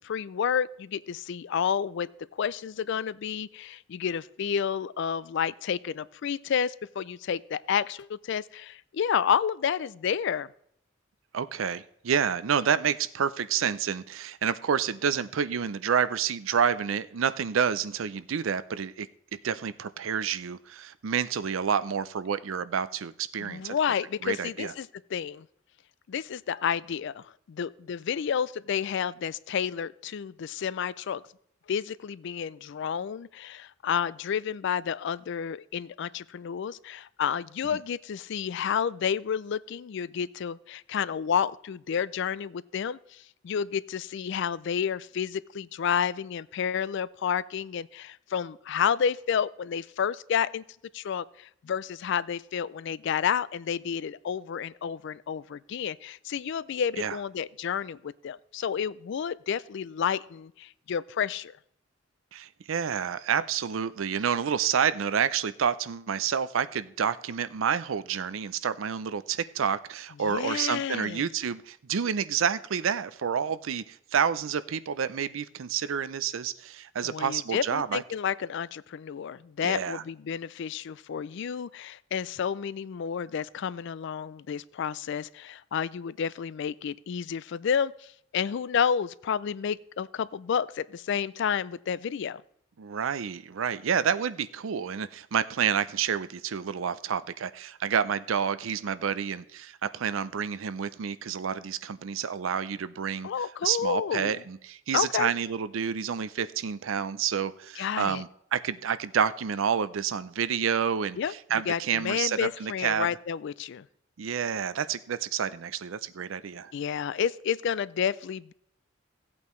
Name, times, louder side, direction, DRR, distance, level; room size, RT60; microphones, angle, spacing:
voice 1, 0.0-2.1 2.4-10.5 23.4-25.5 26.1-31.2 31.7-50.6 50.9-61.6 70.2-71.3 77.0-92.4 103.2-104.4 104.9-105.3 107.8-108.2 111.2-113.9 116.7-118.5, left 7 dB, 60° left, 19 dB, 0.3 m, -30 dB
voice 2, 11.3-23.7 24.2-24.7 37.7-37.8 57.0-57.2 62.3-78.0 79.6-80.0 92.8-103.3 103.6-111.2 111.5-113.1 114.2-116.7, right 7 dB, 75° right, 14 dB, 0.5 m, -29 dB
16.5 x 8.5 x 3.1 m, 0.72 s
head